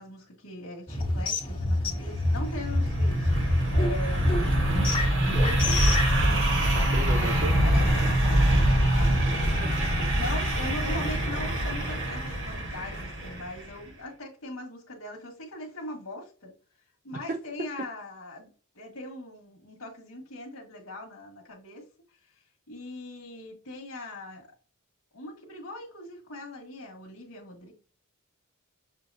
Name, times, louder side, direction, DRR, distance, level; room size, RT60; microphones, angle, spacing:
voice 1, 0.0-4.3 5.4-6.1 7.6-9.8 10.1-16.5 17.0-18.5 18.7-21.9 22.7-24.5 25.1-27.7, left 2 dB, 75° left, 1.6 m, -41 dB
sound 1, 0.9-6.2, left 2 dB, 25° left, 1.6 m, -28 dB
sound 2, 2.0-13.7, right 1 dB, 60° right, 1.4 m, -25 dB
voice 2, 6.6-7.7 9.6-10.1 17.1-17.4, right 2 dB, 40° right, 0.5 m, -36 dB
6.8 x 2.7 x 2.7 m
head